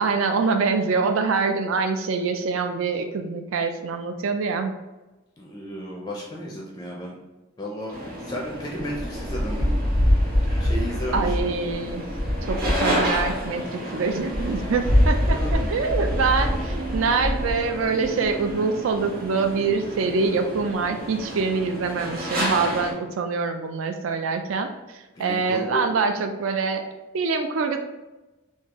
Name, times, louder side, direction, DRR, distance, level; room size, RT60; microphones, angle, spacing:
voice 1, 0.0-4.7 11.1-12.1 12.4-26.8 27.1-27.8, right 4 dB, 80° right, 6 dB, 0.4 m, -25 dB
voice 2, 5.4-7.2 7.6-9.7 10.6-11.5 15.3-15.7 25.2-25.9, equal, 20° left, -1 dB, 0.4 m, -33 dB
sound 1, 7.9-22.9, equal, 50° right, 0.9 m, -26 dB
3.6 x 2.7 x 2.9 m, 1.1 s
head